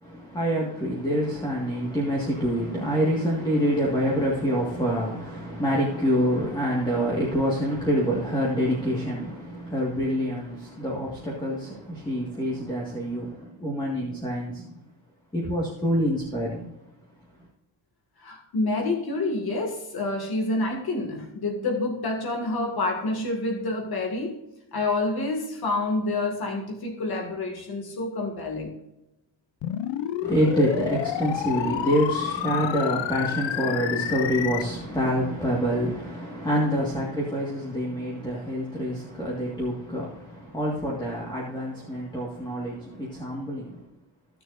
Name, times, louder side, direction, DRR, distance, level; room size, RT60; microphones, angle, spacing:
voice 1, 0.0-14.7 15.3-16.7 30.2-43.8, equal, 10° left, 1.8 m, -26 dB
voice 2, 18.2-24.4 24.7-28.7, left 2 dB, 55° left, 2.2 m, -28 dB
sound 1, 29.6-34.6, left 11 dB, 85° left, 0.7 m, -30 dB
15.5 x 6.9 x 2.6 m
wide cardioid pair, 160°, 43 cm